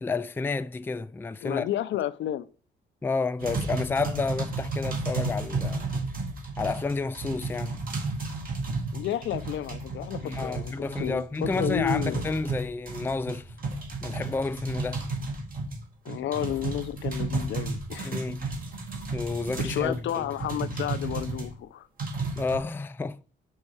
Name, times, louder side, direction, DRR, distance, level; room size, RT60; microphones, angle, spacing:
voice 1, 0.0-1.7 3.0-5.9 6.6-7.8 10.2-13.5 14.0-15.0 18.0-18.5 19.1-20.2 22.4-23.2, left 4 dB, 10° left, 0.4 m, -30 dB
voice 2, 1.4-2.5 8.9-12.3 16.0-18.2 19.6-21.9, left 11 dB, 70° left, 0.5 m, -31 dB
sound 1, 3.4-21.5 22.0-22.6, right 3 dB, 45° right, 2.0 m, -33 dB
5.5 x 5.4 x 4.8 m
cardioid pair, 90°, 20 cm